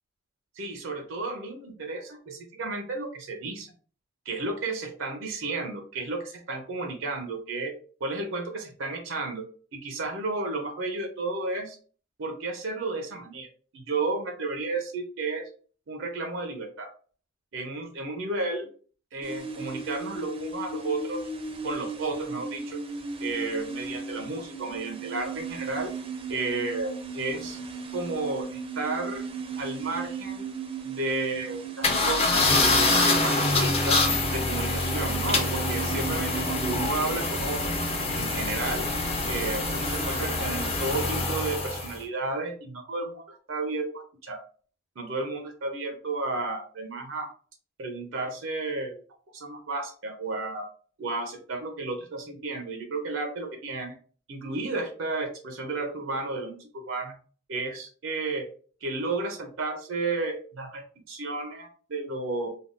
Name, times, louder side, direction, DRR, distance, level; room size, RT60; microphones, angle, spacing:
voice 1, 0.6-3.7 4.3-7.8 8.0-9.5 9.7-11.8 12.2-13.5 13.7-15.5 15.9-16.9 17.5-18.7 19.1-21.2 21.6-22.8 23.2-25.9 26.3-27.6 27.9-29.2 29.6-30.5 30.8-32.7 33.2-37.8 38.2-38.9 39.3-44.4 45.0-47.3 47.8-49.0 49.3-50.7 51.0-53.9 54.3-57.1 57.5-58.5 58.8-62.5, right 3 dB, 80° right, 4 dB, 0.6 m, -32 dB
sound 1, 19.2-36.9, right 4 dB, 30° right, 0.4 m, -36 dB
sound 2, 31.8-42.0, left 2 dB, 30° left, 0.6 m, -25 dB
3.4 x 2.2 x 2.5 m, 0.42 s
head